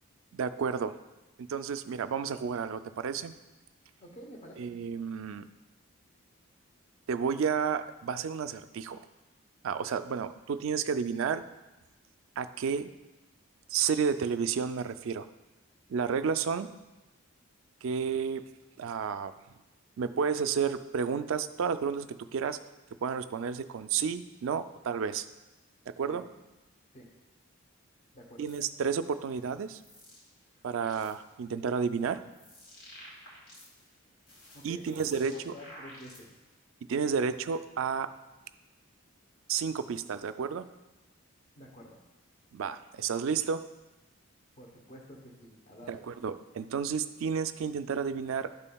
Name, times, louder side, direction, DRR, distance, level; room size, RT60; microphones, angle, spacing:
voice 1, 0.3-1.0 1.4-3.3 4.6-5.4 7.1-9.1 9.6-11.4 12.4-12.9 13.7-15.3 15.9-16.7 17.8-18.4 18.8-19.3 20.0-22.6 23.0-25.3 25.9-26.2 28.4-29.8 30.6-32.2 34.6-35.5 36.9-38.1 39.5-40.7 42.5-43.7 45.9-48.5, right 6 dB, 65° right, 11 dB, 0.3 m, -31 dB
voice 2, 4.0-4.8 26.0-26.3 26.9-27.1 28.1-28.5 34.5-36.4 41.5-42.0 44.6-46.1, equal, 30° left, 0 dB, 0.8 m, -49 dB
sound 1, 28.5-28.7 29.4-30.2 30.6-31.3 31.9-33.9 34.2-36.5, equal, 75° left, 2.3 m, -52 dB
12.0 x 5.4 x 2.3 m, 1.1 s
head